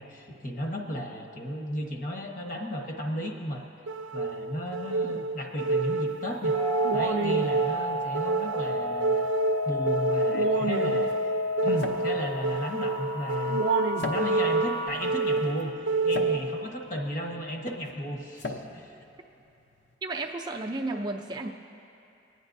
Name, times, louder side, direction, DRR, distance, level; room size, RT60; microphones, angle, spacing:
voice 1, 0.0-3.6 4.1-6.6 6.9-9.3 9.7-11.1 11.6-13.7 14.0-15.7 16.0-18.9, equal, 45° left, 1 dB, 1.1 m, -34 dB
sound 1, 3.9-16.8, right 3 dB, 85° right, 0.5 m, -28 dB
sound 2, 6.5-14.9, left 2 dB, 25° left, 0.7 m, -32 dB
sound 3, 10.1-19.9, left 2 dB, 60° left, 0.7 m, -41 dB
voice 2, 20.0-21.5, right 2 dB, 25° right, 1 dB, 0.4 m, -33 dB
23.5 x 9.7 x 2.6 m, 2.7 s
head